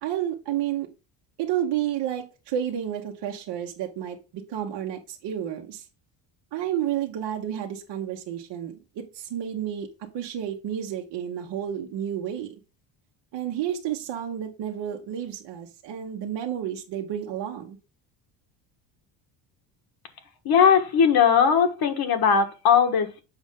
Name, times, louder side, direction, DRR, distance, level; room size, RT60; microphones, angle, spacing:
voice 1, 0.0-0.9 1.4-5.8 6.5-9.9 10.1-12.6 13.3-17.8, right 10 dB, 60° right, 0 dB, 1.4 m, -31 dB
voice 2, 20.4-23.2, left 7 dB, 50° left, 6 dB, 1.5 m, -19 dB
7.2 x 5.2 x 3.7 m, 0.29 s
cardioid pair, 130°, 47 cm